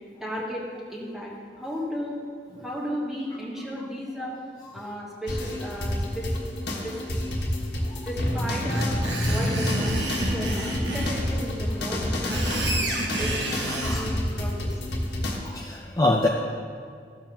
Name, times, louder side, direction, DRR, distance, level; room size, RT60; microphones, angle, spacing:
voice 1, 0.2-2.2 2.6-4.3 4.7-6.3 6.8-7.0 8.0-8.9 9.2-12.9 13.2-14.8, equal, ahead, -5 dB, 1.6 m, -34 dB
sound 1, 5.3-15.4, left 1 dB, 75° left, 1.4 m, -28 dB
Screech, 8.7-11.1 12.0-14.0, right 1 dB, 85° right, 1.4 m, -30 dB
voice 2, 13.7-14.0 15.4-16.3, left 2 dB, 20° left, -1 dB, 0.4 m, -25 dB
14.5 x 6.9 x 2.8 m, 2.2 s
head